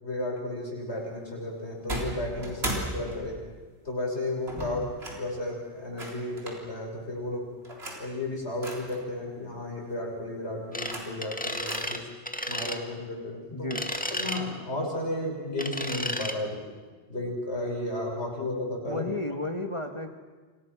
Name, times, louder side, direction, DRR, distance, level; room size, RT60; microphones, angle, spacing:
voice 1, 0.0-3.4 3.8-4.8 5.2-7.5 7.9-12.1 12.5-13.7 14.1-16.6 17.1-19.1, left 1 dB, 85° left, -1 dB, 6.5 m, -33 dB
sound 1, 1.9-3.5 4.5-5.2 6.0-6.6 7.6-8.1 8.6-9.0 10.6-11.3 11.7-11.8, right 1 dB, 70° right, 4.2 m, -36 dB
voice 2, 4.6-5.0 13.5-13.9 18.8-20.1, left 2 dB, 30° left, 6 dB, 1.8 m, -33 dB
sound 2, 10.7-10.9 11.2-12.0 12.2-12.8 13.7-14.4 15.6-16.3, equal, 10° left, 1.8 m, -32 dB
29.5 x 26.0 x 6.2 m, 1.4 s
omnidirectional pair, 1.1 m